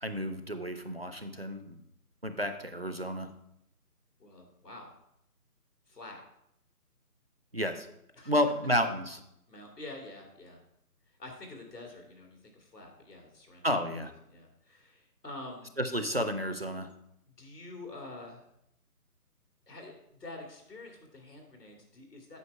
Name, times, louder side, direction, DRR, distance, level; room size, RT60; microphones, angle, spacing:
voice 1, 0.0-1.8 2.2-3.3 7.5-7.9 8.3-9.2 13.6-14.1 15.8-16.9, equal, 45° right, 8 dB, 0.4 m, -31 dB
voice 2, 4.2-4.9 5.9-6.2 8.2-8.4 9.5-10.6 11.2-13.7 14.3-15.7 17.4-18.4 19.7-19.9 20.2-22.4, left 2 dB, 85° left, 1 dB, 2.6 m, -47 dB
8.3 x 5.3 x 4.6 m, 0.79 s
figure-of-eight pair, 155°, 47 cm